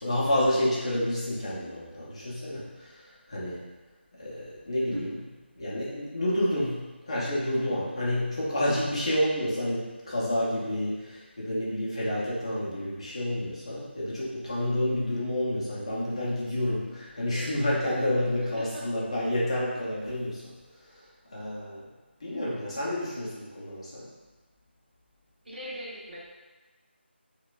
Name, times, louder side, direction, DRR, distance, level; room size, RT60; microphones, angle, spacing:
voice 1, 0.0-3.7 4.2-5.2 5.6-21.9 22.2-24.1, left 1 dB, 30° left, -7 dB, 0.7 m, -29 dB
voice 2, 18.4-18.8 25.4-26.3, equal, 55° right, -4 dB, 0.8 m, -39 dB
4.2 x 2.3 x 2.3 m, 1.2 s
figure-of-eight pair, 180°, 6 cm